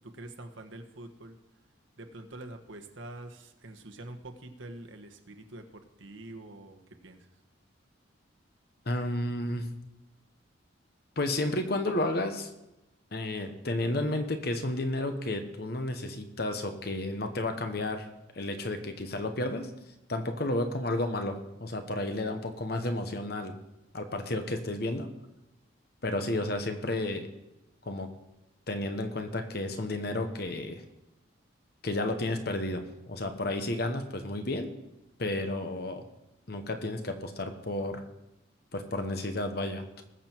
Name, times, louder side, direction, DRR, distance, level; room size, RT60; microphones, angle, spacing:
voice 1, 0.0-1.4 2.0-7.3, right 2 dB, 80° right, 4 dB, 1.4 m, -45 dB
voice 2, 8.9-9.7 11.2-12.5 13.1-18.1 18.3-19.7 20.1-23.5 23.9-25.1 26.0-27.3 27.8-28.1 28.7-30.8 31.8-34.7 35.2-36.1 36.5-38.0 38.7-40.0, left 1 dB, 50° left, 6 dB, 1.1 m, -32 dB
20.0 x 7.5 x 4.6 m, 0.96 s
head